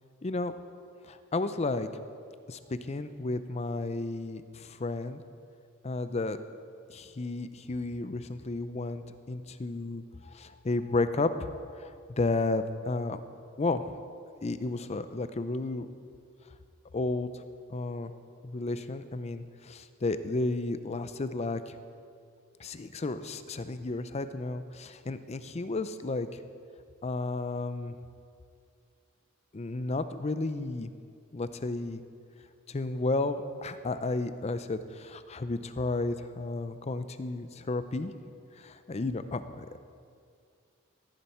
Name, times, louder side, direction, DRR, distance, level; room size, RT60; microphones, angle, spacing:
voice 1, 0.2-0.5 1.1-1.9 2.5-5.2 5.8-6.4 6.9-13.2 13.6-13.8 14.4-15.9 16.9-17.4 17.7-18.1 18.4-21.7 22.6-26.4 27.0-27.9 29.5-30.9 31.3-32.0 32.7-38.1 38.6-39.8, left 2 dB, 30° left, 11 dB, 0.5 m, -32 dB
13.5 x 11.5 x 4.4 m, 2.3 s
head